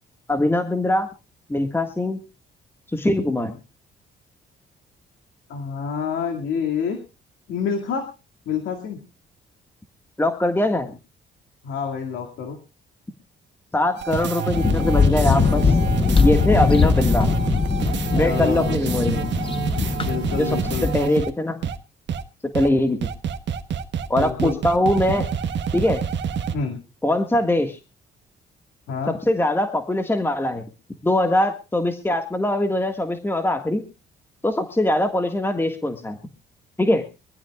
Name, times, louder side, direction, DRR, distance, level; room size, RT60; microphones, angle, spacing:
voice 1, 0.3-1.1 1.5-2.2 2.9-3.5 10.2-10.9 13.7-15.7 16.2-17.3 18.1-19.3 20.4-21.6 22.5-23.0 24.1-25.3 25.7-26.0 27.0-27.8 29.1-30.6 31.0-33.8 34.4-36.2 36.8-37.0, left 1 dB, 10° left, 6 dB, 1.7 m, -22 dB
voice 2, 5.5-7.0 7.5-8.1 8.5-9.0 11.6-12.6 18.1-18.8 20.0-20.8 24.2-24.6 26.5-26.8 28.9-29.1, left 6 dB, 85° left, 3 dB, 2.3 m, -27 dB
sound 1, 14.0-21.3 21.6-21.8 22.1-22.2 22.5-22.7 23.0-26.5, right 7 dB, 65° right, 1.4 m, -27 dB
sound 2, 14.5-20.9, left 5 dB, 25° left, 0.7 m, -21 dB
24.0 x 15.0 x 2.4 m, 0.29 s
cardioid pair, 90°, 20 cm